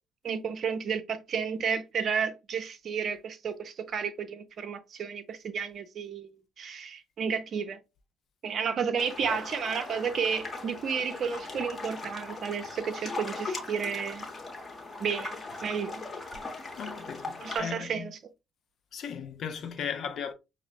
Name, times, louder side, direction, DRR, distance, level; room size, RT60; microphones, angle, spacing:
voice 1, 0.2-7.8 8.4-14.3 15.0-16.1 17.4-18.2, right 6 dB, 45° right, 0.5 m, -32 dB
sound 1, 9.0-17.6, left 3 dB, 30° left, 1.0 m, -39 dB
voice 2, 16.8-18.1 18.9-20.3, left 7 dB, 50° left, 0.5 m, -36 dB
5.6 x 2.0 x 2.3 m
figure-of-eight pair, 45°, 0 cm